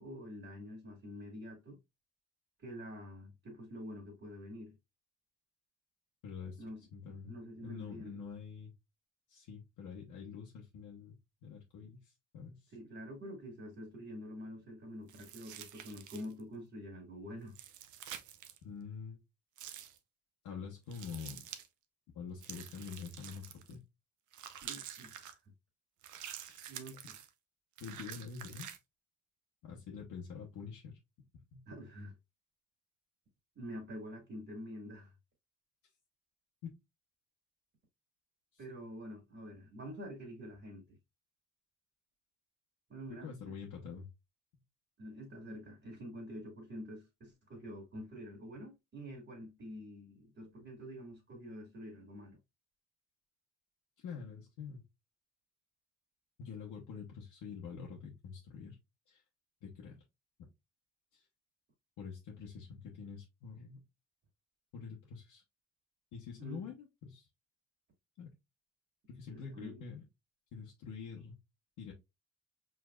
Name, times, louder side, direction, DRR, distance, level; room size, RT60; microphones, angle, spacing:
voice 1, 0.0-1.8 2.6-4.8 6.6-6.8 7.3-8.2 12.7-17.6 24.6-25.4 26.7-27.2 31.7-32.1 33.6-35.1 38.6-41.0 42.9-43.3 45.0-52.4 66.4-66.6 69.3-69.8, equal, 45° right, 1.9 m, -47 dB
voice 2, 6.2-6.6 6.9-7.3 7.6-8.7 9.3-11.2 11.4-12.7 18.6-19.2 20.4-21.5 22.1-23.8 26.5-26.6 27.8-28.7 29.6-31.0 31.5-31.6 36.6-36.7 43.1-44.1 54.0-54.8 56.4-58.8 59.1-59.2 59.6-60.0 60.4-60.5 61.1-61.2 62.0-63.8 64.7-65.4 66.1-67.3 68.2-68.3 69.1-70.1 70.5-71.4 71.8-71.9, left 6 dB, 85° left, 1.0 m, -46 dB
sound 1, 15.1-16.4 17.5-18.6 19.6-20.0 20.9-21.7 22.4-23.8 24.3-25.3 26.0-27.3 27.8-28.8, right 10 dB, 75° right, 0.7 m, -48 dB
4.9 x 3.4 x 2.3 m
cardioid pair, 90°, 30 cm